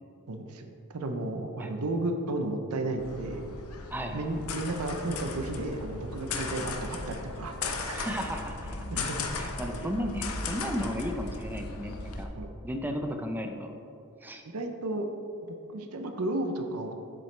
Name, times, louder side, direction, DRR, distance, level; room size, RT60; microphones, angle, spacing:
voice 1, 0.3-3.4 4.1-8.0 8.9-9.3 12.4-12.5 14.5-15.1 15.7-16.9, right 2 dB, 80° right, 5 dB, 0.7 m, -33 dB
sound 1, 3.0-12.2, left 3 dB, 75° left, 0.7 m, -36 dB
voice 2, 3.9-4.3 7.9-12.3 12.6-13.7 14.2-14.4, equal, 10° right, 4 dB, 0.5 m, -35 dB
7.7 x 7.3 x 3.3 m, 2.6 s
head